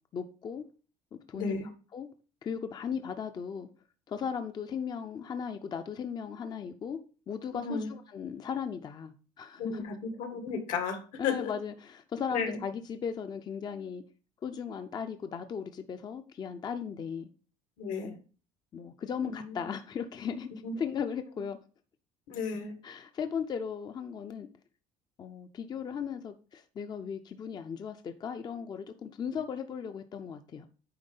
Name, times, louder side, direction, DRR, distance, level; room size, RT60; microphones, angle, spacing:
voice 1, 0.1-0.7 1.1-1.6 1.9-2.1 2.4-3.7 4.1-7.0 7.3-9.8 11.2-14.0 14.4-17.3 18.0-18.2 18.7-20.5 20.8-21.6 22.8-24.5 25.2-30.7, left 7 dB, 30° left, 0.5 m, -37 dB
voice 2, 1.3-1.7 7.5-7.9 9.6-11.5 12.3-12.6 17.8-18.1 19.2-19.6 20.6-20.7 22.3-22.7, left 5 dB, 80° left, 1.9 m, -34 dB
9.5 x 3.6 x 5.4 m
cardioid pair, 145°, 13 cm